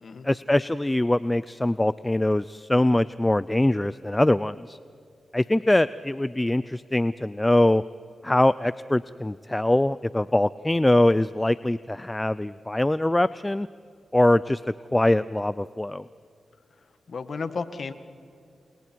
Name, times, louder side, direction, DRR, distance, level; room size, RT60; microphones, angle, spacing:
voice 1, 0.2-4.8 5.3-7.8 8.2-13.7 14.1-16.0, left 1 dB, 15° left, 16 dB, 0.5 m, -23 dB
voice 2, 17.1-17.9, left 4 dB, 65° left, 10 dB, 1.7 m, -33 dB
30.0 x 29.0 x 4.6 m, 2.4 s
cardioid pair, 55°, 0 cm